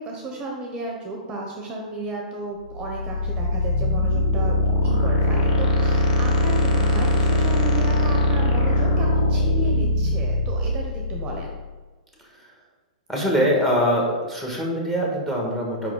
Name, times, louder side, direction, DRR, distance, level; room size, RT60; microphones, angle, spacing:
voice 1, 0.0-11.5, right 1 dB, 25° right, 0 dB, 0.9 m, -33 dB
sound 1, 2.7-11.6, left 1 dB, 70° left, 1.1 m, -21 dB
voice 2, 13.1-15.9, equal, 5° left, -2 dB, 1.4 m, -23 dB
5.2 x 4.7 x 3.9 m, 1.3 s
hypercardioid pair, 120°, 4 cm